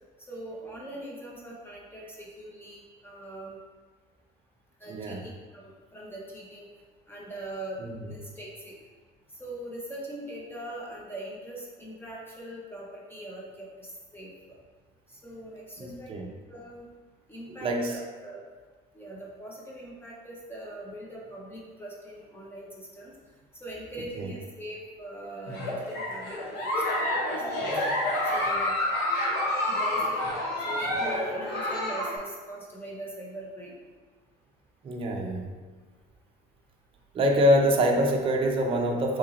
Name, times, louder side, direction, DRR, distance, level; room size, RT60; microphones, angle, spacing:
voice 1, 0.3-3.6 4.8-6.7 7.1-7.8 8.1-8.7 9.4-14.3 15.1-16.1 16.5-16.8 17.3-18.4 18.9-23.1 23.6-26.7 26.9-27.7 28.3-28.8 29.7-30.3 30.6-33.8, right 1 dB, 10° left, -5 dB, 0.6 m, -41 dB
voice 2, 4.9-5.2 7.8-8.0 15.8-16.3 17.5-18.0 24.2-24.3 34.8-35.5 37.1-39.2, equal, 30° right, 1 dB, 0.5 m, -25 dB
Giggle, 25.5-32.2, left 1 dB, 70° left, 0.9 m, -28 dB
2.9 x 2.7 x 3.7 m, 1.4 s
cardioid pair, 105°, 19 cm